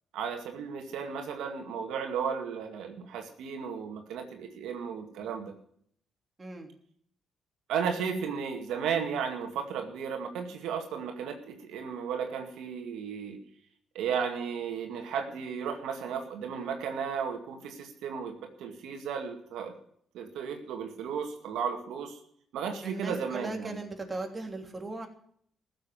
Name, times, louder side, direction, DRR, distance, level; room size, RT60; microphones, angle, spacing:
voice 1, 0.1-5.5 7.7-13.4 13.9-19.7 20.1-22.2 22.5-23.8, right 6 dB, 85° right, 4 dB, 2.1 m, -34 dB
voice 2, 6.4-6.7 22.8-25.1, right 2 dB, 25° right, 3 dB, 3.0 m, -38 dB
15.0 x 7.7 x 9.1 m, 0.64 s
cardioid pair, 90°, 0 cm